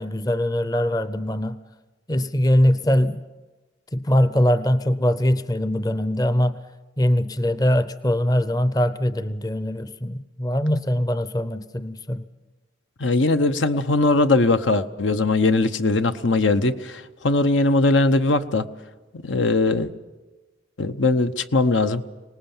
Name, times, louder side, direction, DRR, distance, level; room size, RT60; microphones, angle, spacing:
voice 1, 0.0-1.6 2.1-3.2 3.9-6.6 7.0-12.2, equal, 20° left, 13 dB, 0.6 m, -22 dB
voice 2, 13.0-18.6 19.2-19.9 20.8-22.0, left 2 dB, 80° left, 10 dB, 0.9 m, -20 dB
25.0 x 19.0 x 7.2 m, 1.2 s
head